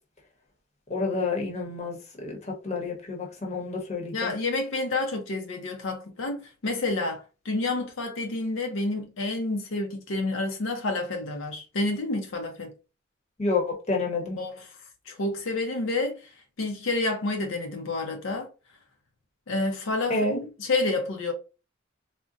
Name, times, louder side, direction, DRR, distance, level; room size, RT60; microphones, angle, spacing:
voice 1, 0.9-4.3 13.4-14.4 20.1-20.5, left 3 dB, 35° left, 0.9 m, -29 dB
voice 2, 4.1-12.7 14.4-14.8 15.1-16.3 16.6-18.5 19.5-21.3, left 2 dB, 75° left, 0.6 m, -29 dB
3.8 x 2.1 x 2.4 m
head